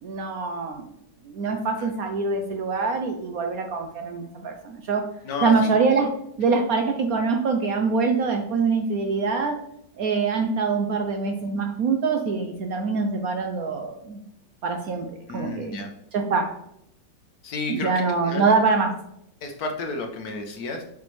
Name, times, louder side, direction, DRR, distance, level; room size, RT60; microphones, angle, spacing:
voice 1, 0.0-0.9 1.2-5.0 5.4-6.1 6.4-9.6 10.0-14.2 14.6-15.1 15.3-15.8 16.1-16.5 17.7-18.9, right 4 dB, 65° right, 4 dB, 0.9 m, -24 dB
voice 2, 5.2-5.7 15.3-15.9 17.4-17.9 18.3-18.5 19.4-20.8, left 3 dB, 60° left, 4 dB, 1.2 m, -31 dB
6.8 x 4.9 x 3.2 m, 0.75 s
omnidirectional pair, 2.0 m